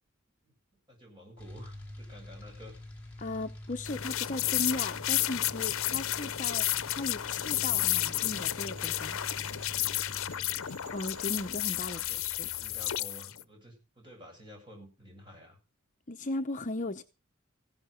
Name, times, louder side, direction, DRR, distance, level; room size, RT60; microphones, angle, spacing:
voice 1, 0.9-2.8 11.8-12.2 12.4-15.6, equal, 20° right, 7.8 m, -51 dB
sound 1, 1.4-13.0, left 1 dB, 5° left, 4.2 m, -47 dB
voice 2, 3.2-9.2 10.9-12.5 16.1-17.0, left 2 dB, 35° left, 0.8 m, -37 dB
sound 2, 3.8-13.4, left 14 dB, 75° left, 0.6 m, -32 dB
sound 3, 8.1-11.5, right 5 dB, 65° right, 5.0 m, -57 dB
16.0 x 11.5 x 5.2 m
head